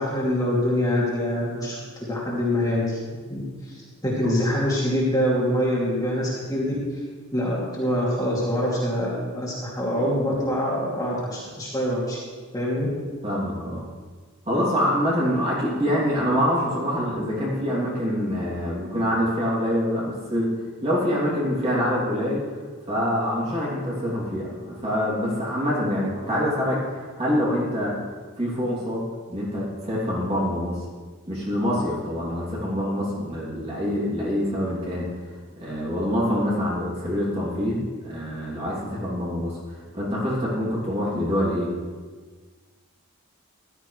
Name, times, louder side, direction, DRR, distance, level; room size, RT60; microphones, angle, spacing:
voice 1, 0.0-3.0 3.3-7.0 7.3-12.2 12.5-12.9, equal, 15° left, -6 dB, 2.7 m, -25 dB
voice 2, 13.2-13.8 14.4-20.5 20.8-22.4 22.9-27.9 28.4-29.0 29.3-30.8 31.3-35.1 35.6-39.6 39.9-41.7, equal, 25° right, -6 dB, 3.0 m, -25 dB
14.5 x 12.0 x 3.3 m, 1.5 s
head